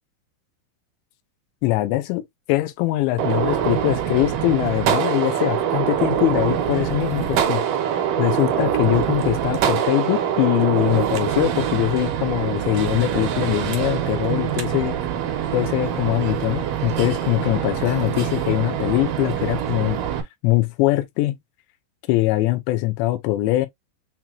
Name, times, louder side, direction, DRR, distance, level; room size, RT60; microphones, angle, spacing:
voice 1, 1.6-2.2 2.5-7.6 8.2-15.0 15.5-20.0 20.4-21.4 22.1-23.7, left 17 dB, 85° left, 2.9 m, -22 dB
Gunshot gunfire, 3.2-20.2, right 9 dB, 70° right, 2.1 m, -24 dB
7.5 x 2.9 x 2.4 m
omnidirectional pair, 5.2 m